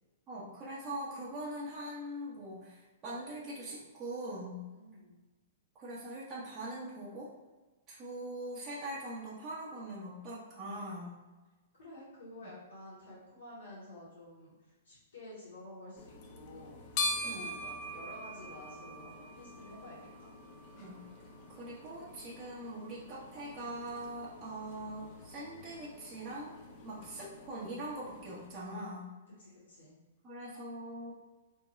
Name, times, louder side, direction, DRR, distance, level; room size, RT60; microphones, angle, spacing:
voice 1, 0.3-4.6 5.7-7.3 7.9-11.1 12.4-12.5 17.2-17.4 20.7-21.0 21.5-26.5 26.8-29.0 30.2-31.1, right 1 dB, 30° right, -7 dB, 0.9 m, -42 dB
voice 2, 4.7-5.1 11.7-20.3 26.8-27.0 29.3-30.0, left 1 dB, 85° left, -9 dB, 1.4 m, -51 dB
sound 1, 16.0-28.5, left 2 dB, 45° left, 0.5 m, -43 dB
3.5 x 2.2 x 3.1 m, 1.2 s
hypercardioid pair, 120°, 0 cm